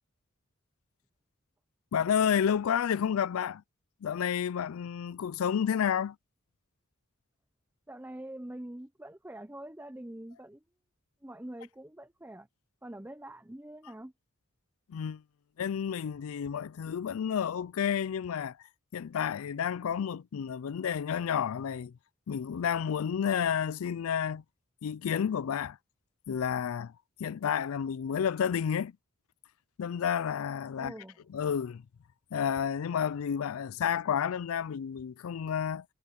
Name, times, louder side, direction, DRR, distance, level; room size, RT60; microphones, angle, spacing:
voice 1, 1.9-3.6 4.0-6.2 14.9-15.2 15.6-18.6 18.9-21.9 22.3-24.4 24.8-25.8 26.3-26.9 27.2-28.9 29.8-30.9 31.3-31.8 32.3-35.8, left 8 dB, 75° left, 0.4 m, -30 dB
voice 2, 7.9-10.6 11.2-12.5 12.8-14.1 30.7-31.2, right 1 dB, 10° right, 0.6 m, -44 dB
head